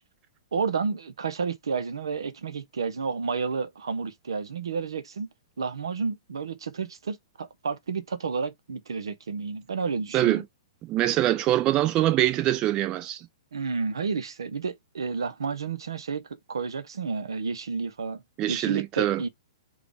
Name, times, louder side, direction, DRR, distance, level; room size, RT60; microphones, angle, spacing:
voice 1, 0.5-5.3 5.6-10.4 13.5-16.2 16.5-18.2 18.5-19.3, right 5 dB, 70° right, 0.7 m, -31 dB
voice 2, 10.9-13.3 18.4-19.2, right 14 dB, 30° right, 0.5 m, -24 dB
4.9 x 2.4 x 3.3 m
figure-of-eight pair, 115°, 3 cm